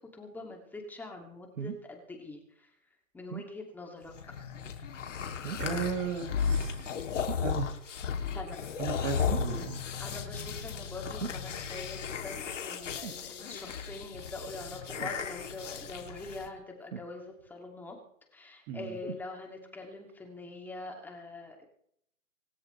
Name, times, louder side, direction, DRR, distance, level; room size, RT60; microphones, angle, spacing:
voice 1, 0.0-2.7 3.1-4.1 8.3-8.7 9.0-9.1 10.0-18.0 18.3-21.7, left 2 dB, 5° left, 2 dB, 2.6 m, -44 dB
sound 1, 1.6-1.9 3.3-3.6 5.4-5.8 7.3-7.5 9.3-9.6 11.2-11.5 13.0-13.3 15.0-15.2 16.9-17.5 19.0-19.3 20.1-20.2, right 7 dB, 75° right, 1.4 m, -40 dB
sound 2, 4.1-16.5, left 6 dB, 60° left, 3.0 m, -35 dB
voice 2, 5.6-6.9 7.4-7.7 8.8-9.8 18.7-19.0, right 6 dB, 25° right, 4 dB, 2.2 m, -35 dB
26.0 x 13.0 x 3.4 m, 0.67 s
hypercardioid pair, 150°, 41 cm